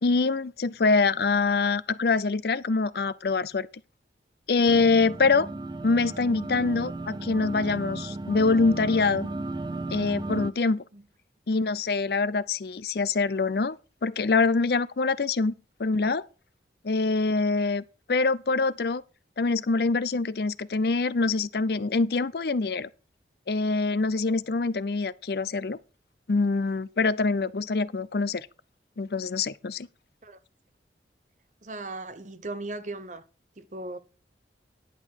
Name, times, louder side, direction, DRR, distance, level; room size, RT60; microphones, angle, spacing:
voice 1, 0.0-3.7 4.5-5.5 5.8-9.3 9.9-10.8 11.5-13.8 14.0-15.5 15.8-16.2 16.8-17.8 18.1-19.0 19.4-22.9 23.5-25.8 26.3-28.5 29.0-29.9, left 3 dB, 60° left, 0.5 m, -25 dB
sound 1, 4.7-10.5, right 2 dB, 25° right, 0.4 m, -35 dB
voice 2, 31.6-33.2 33.6-34.0, right 2 dB, 45° right, 0.9 m, -37 dB
11.0 x 7.6 x 4.6 m
head